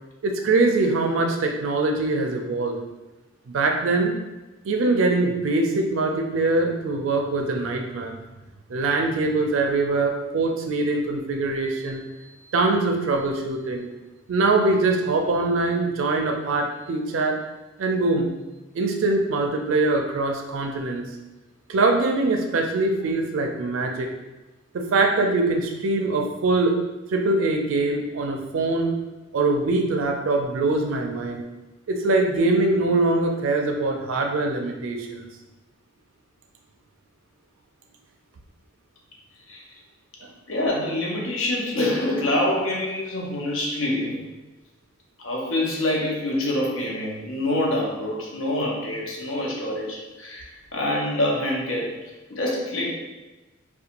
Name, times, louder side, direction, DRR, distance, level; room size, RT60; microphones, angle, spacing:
voice 1, 0.2-2.8 3.5-4.1 4.6-8.1 8.7-12.0 12.5-13.9 14.3-17.4 17.8-18.3 18.7-21.0 21.7-24.1 24.7-26.8 27.1-28.9 29.3-31.4 31.9-35.3 40.2-40.3, right 2 dB, 75° right, 3 dB, 0.4 m, -23 dB
voice 2, 40.5-44.2 45.2-52.0 52.3-52.9, left 1 dB, 80° left, -2 dB, 0.6 m, -26 dB
2.8 x 2.2 x 2.5 m, 1.1 s
head